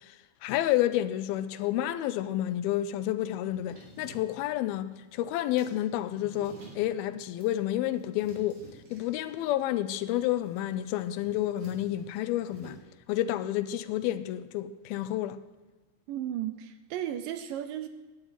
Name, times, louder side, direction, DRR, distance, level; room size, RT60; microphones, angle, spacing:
voice 1, 0.4-8.6 8.9-12.8 13.1-15.4, left 13 dB, 85° left, 2.5 m, -30 dB
sound 1, 3.5-12.8, right 3 dB, 55° right, 4.7 m, -53 dB
voice 2, 16.1-17.9, right 11 dB, 80° right, 2.1 m, -34 dB
10.5 x 10.5 x 9.1 m
omnidirectional pair, 4.3 m